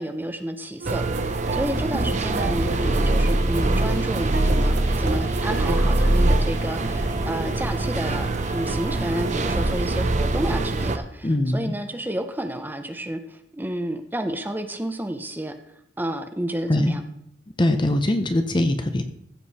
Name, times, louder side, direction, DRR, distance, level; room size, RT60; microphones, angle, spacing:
voice 1, 0.0-15.5 16.0-17.0, right 1 dB, 10° right, 6 dB, 0.9 m, -30 dB
sound 1, 0.8-11.0, right 2 dB, 40° right, 0.7 m, -23 dB
sound 2, 0.8-6.4, right 3 dB, 55° right, 1.0 m, -33 dB
sound 3, 2.6-9.9, left 1 dB, 60° left, 2.6 m, -38 dB
voice 2, 11.2-11.7 16.7-17.0 17.6-19.0, left 1 dB, 25° left, 8 dB, 0.7 m, -22 dB
15.0 x 7.7 x 4.2 m, 0.72 s
head